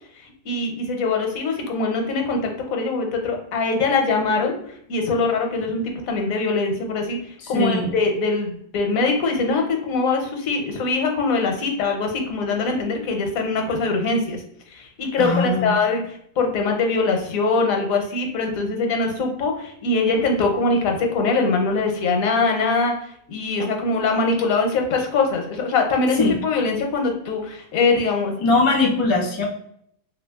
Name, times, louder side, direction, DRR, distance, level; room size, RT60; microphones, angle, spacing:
voice 1, 0.4-4.5 4.9-7.2 7.5-14.4 14.7-16.0 16.4-22.9 23.3-28.4, left 3 dB, 85° left, 3 dB, 1.1 m, -22 dB
voice 2, 7.4-7.9 15.2-15.7 26.2-26.4 28.4-29.4, left 3 dB, 35° left, -1 dB, 0.4 m, -20 dB
3.0 x 2.7 x 2.2 m, 0.69 s
omnidirectional pair, 1.4 m